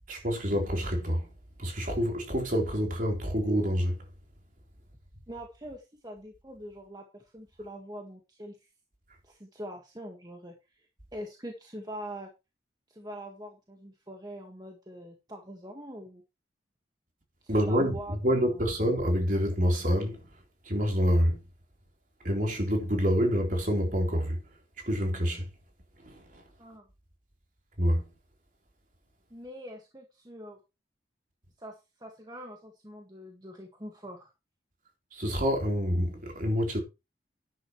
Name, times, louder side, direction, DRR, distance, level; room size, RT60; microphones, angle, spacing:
voice 1, 0.1-1.3 1.6-4.0 17.5-20.2 20.7-21.4 22.2-24.4 24.9-25.5 26.0-26.4 27.8-28.1 35.1-36.8, equal, 45° right, 4.0 m, -27 dB
voice 2, 5.3-8.6 9.2-12.3 12.9-16.2 17.4-18.2 18.5-18.7 26.6-26.9 29.3-30.6 31.6-34.3, equal, 20° right, 1.8 m, -44 dB
11.5 x 10.5 x 3.2 m
head